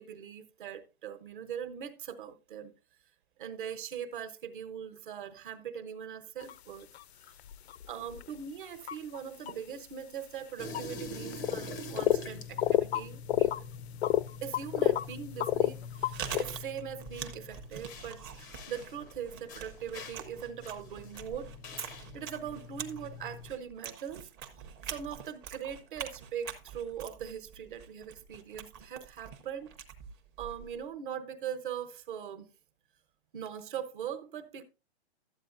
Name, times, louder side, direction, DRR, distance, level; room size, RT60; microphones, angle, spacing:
voice 1, 0.0-2.7 3.4-6.9 7.1-7.4 7.9-13.5 14.4-21.5 22.1-24.3 24.8-29.7 30.4-32.5 33.3-34.6, right 8 dB, 50° right, 1.1 m, -41 dB
sound 1, 6.4-6.5 6.9-8.2 8.9-9.2 9.5-9.6 10.7-10.8 11.3-11.7 12.0-12.2 12.6-13.6 14.0-15.1 15.4-16.4, left 12 dB, 70° left, 0.5 m, -28 dB
sound 2, 10.6-23.5, left 3 dB, 20° left, 0.5 m, -45 dB
Chewing mastication, 15.8-30.9, right 7 dB, 20° right, 0.7 m, -45 dB
13.0 x 8.1 x 2.6 m
hypercardioid pair, 160°, 33 cm